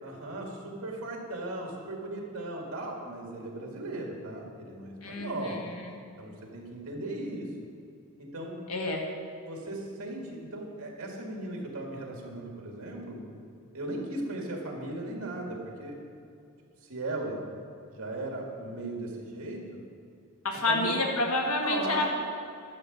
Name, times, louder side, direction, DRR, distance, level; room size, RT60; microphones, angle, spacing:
voice 1, 0.0-5.6 6.2-7.5 8.2-8.6 9.4-13.2 13.7-16.0 16.9-17.4 17.9-19.8 20.7-20.9 21.6-22.1, right 2 dB, 80° right, 0 dB, 2.0 m, -37 dB
voice 2, 5.0-5.8 8.7-9.0 20.4-22.1, left 2 dB, 80° left, 0 dB, 1.5 m, -29 dB
10.5 x 7.0 x 5.3 m, 2.5 s
head